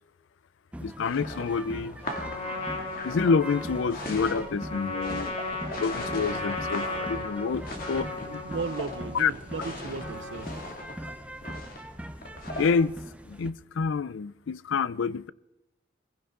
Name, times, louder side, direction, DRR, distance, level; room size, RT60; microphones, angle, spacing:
sound 1, 0.7-13.5, right 1 dB, 5° right, 0.6 m, -41 dB
voice 1, 0.8-2.0 3.0-5.3 5.7-8.4 9.1-9.3 12.6-13.0 13.2-15.3, left 5 dB, 75° left, 0.4 m, -28 dB
sound 2, 1.0-12.9, left 1 dB, 45° left, 2.3 m, -39 dB
Trumpet, 2.0-10.7, left 2 dB, 30° left, 1.9 m, -36 dB
voice 2, 8.5-10.5, right 4 dB, 65° right, 0.5 m, -35 dB
22.0 x 15.5 x 3.7 m
head